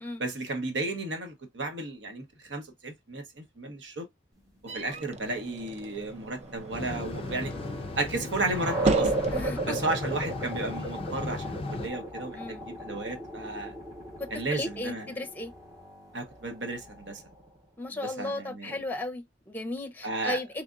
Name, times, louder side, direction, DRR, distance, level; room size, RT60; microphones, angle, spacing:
voice 1, 0.2-4.1 4.7-7.5 8.0-9.3 9.7-13.7 14.3-15.2 16.1-17.2 17.9-18.8 20.0-20.4, right 2 dB, 85° right, 1.0 m, -33 dB
sound 1, 4.7-9.8, right 3 dB, 35° right, 0.5 m, -36 dB
sound 2, 6.1-17.5, right 2 dB, 20° right, 1.1 m, -36 dB
sound 3, 6.7-11.9, left 3 dB, 30° left, 0.3 m, -36 dB
voice 2, 9.3-9.9 12.4-12.6 14.2-15.5 17.8-20.6, left 2 dB, 10° left, 0.8 m, -35 dB
3.6 x 3.3 x 2.4 m
head